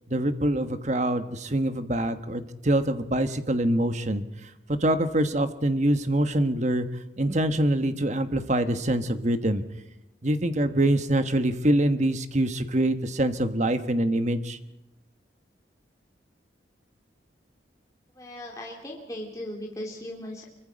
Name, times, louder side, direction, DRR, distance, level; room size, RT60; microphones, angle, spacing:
voice 1, 0.1-4.5 4.8-6.9 7.2-9.6 10.2-14.6, right 1 dB, 35° right, 9 dB, 1.3 m, -25 dB
voice 2, 18.1-20.4, left 1 dB, 15° left, -2 dB, 2.6 m, -37 dB
26.0 x 24.0 x 5.2 m, 0.92 s
head